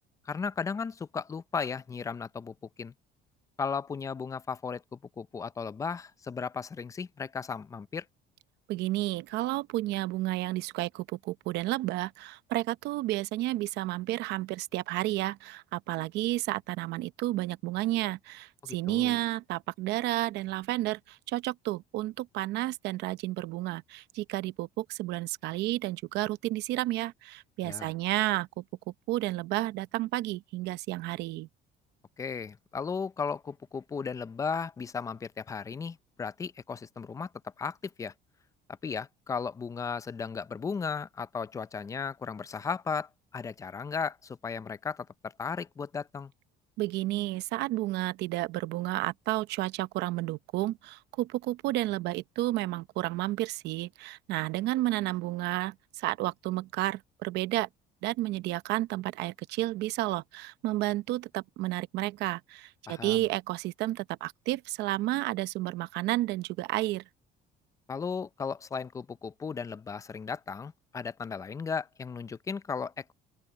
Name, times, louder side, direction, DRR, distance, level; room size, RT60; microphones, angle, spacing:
voice 1, 0.3-2.9 3.6-8.0 18.6-19.2 27.6-27.9 32.2-37.3 37.6-38.1 38.8-46.3 62.9-63.2 67.9-73.1, left 5 dB, 20° left, 0.5 m, -35 dB
voice 2, 8.7-28.6 29.1-31.5 46.8-57.7 58.0-67.0, right 17 dB, 75° right, 0.7 m, -31 dB
open air
cardioid pair, 145°, 18 cm